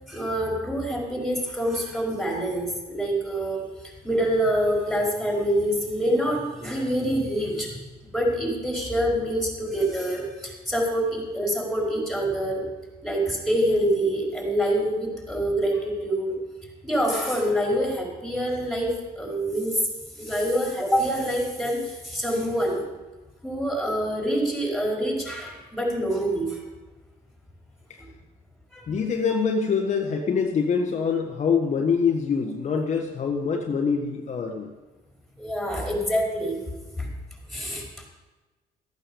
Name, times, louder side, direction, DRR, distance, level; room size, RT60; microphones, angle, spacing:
voice 1, 0.1-12.7 13.0-16.4 16.8-19.8 20.1-22.8 23.4-26.6 28.7-28.9 35.4-36.6 37.0-37.1 37.5-38.0, equal, ahead, -1 dB, 4.8 m, -26 dB
voice 2, 28.9-34.7, left 5 dB, 45° left, 1 dB, 1.5 m, -24 dB
14.5 x 9.0 x 7.2 m, 1.2 s
cardioid pair, 110°, 17 cm